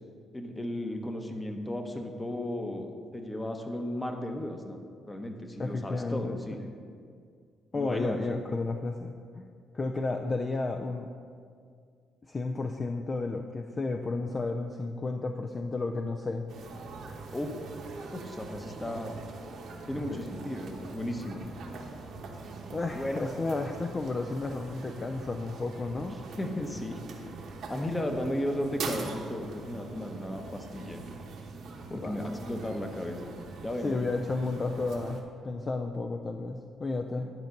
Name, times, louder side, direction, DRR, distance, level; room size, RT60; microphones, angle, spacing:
voice 1, 0.3-6.6 7.7-8.2 17.3-17.5 18.1-19.1 19.9-21.5 22.9-23.3 26.4-27.0 27.7-31.0 31.9-33.3 33.6-34.0, left 1 dB, 15° left, 4 dB, 0.9 m, -35 dB
voice 2, 5.6-6.7 7.7-9.5 9.7-11.1 12.3-16.5 20.1-20.3 22.7-26.2 31.9-32.3 33.8-37.3, left 3 dB, 35° left, 4 dB, 0.4 m, -32 dB
sound 1, 16.5-35.2, right 3 dB, 70° right, 1.1 m, -42 dB
11.0 x 4.5 x 5.2 m, 2.2 s
cardioid pair, 90°, 0 cm